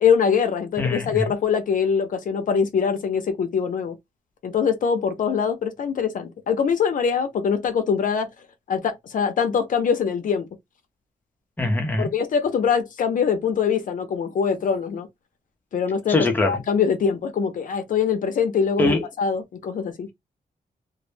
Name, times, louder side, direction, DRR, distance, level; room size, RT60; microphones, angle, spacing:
voice 1, 0.0-3.9 4.4-8.3 8.7-10.5 12.0-15.1 15.7-16.2 16.5-20.1, left 6 dB, 60° left, 0.5 m, -23 dB
voice 2, 0.8-1.3 11.6-12.1 16.1-16.6 18.8-19.0, left 2 dB, 10° left, 0.5 m, -22 dB
2.0 x 2.0 x 3.1 m
wide cardioid pair, 150°, 15 cm